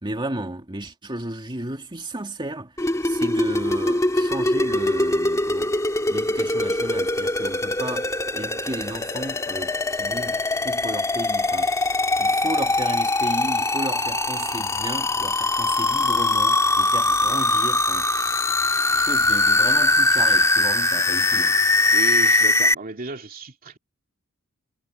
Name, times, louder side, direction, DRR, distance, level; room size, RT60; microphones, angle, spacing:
voice 1, 0.0-2.7 3.0-5.7 6.1-11.7 12.2-18.1 18.9-21.6, right 1 dB, 20° right, 2.5 m, -33 dB
sound 1, 2.8-22.7, left 2 dB, 15° left, 2.2 m, -22 dB
voice 2, 21.9-23.8, right 2 dB, 40° right, 2.5 m, -33 dB
head